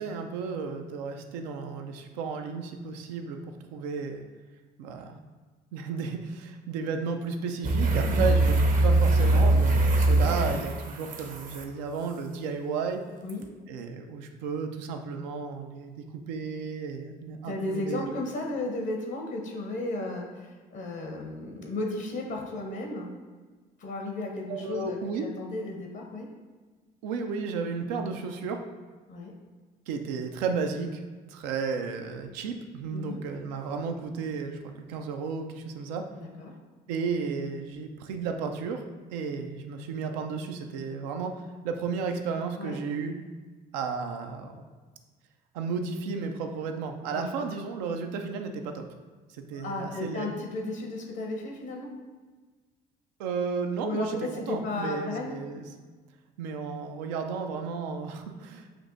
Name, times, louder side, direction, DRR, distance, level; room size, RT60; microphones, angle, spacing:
voice 1, 0.0-4.2 4.8-5.2 5.7-8.6 8.8-13.0 13.7-18.1 24.5-25.3 27.0-28.6 29.9-31.0 31.3-36.1 36.9-38.8 39.1-43.2 43.7-44.6 45.5-48.9 49.3-50.3 53.2-55.7 56.4-58.7, right 5 dB, 85° right, 5 dB, 0.4 m, -33 dB
sound 1, 7.6-11.6 13.3-13.4, right 2 dB, 40° right, 0.6 m, -23 dB
voice 2, 17.4-23.1 23.8-26.3 29.1-29.3 32.9-33.2 36.2-36.5 42.6-42.8 47.1-47.5 49.5-51.9 53.8-55.4, left 2 dB, 65° left, 1 dB, 0.8 m, -34 dB
5.9 x 2.5 x 2.5 m, 1.4 s
hypercardioid pair, 60°, 21 cm